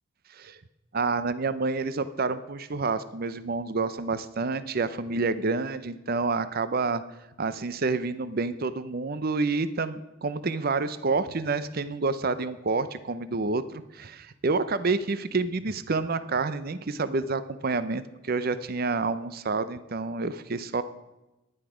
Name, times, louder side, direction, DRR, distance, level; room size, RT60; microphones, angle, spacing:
voice 1, 0.9-7.0 7.4-20.8, right 3 dB, 45° right, 14 dB, 0.6 m, -28 dB
15.0 x 11.0 x 5.0 m, 0.99 s
head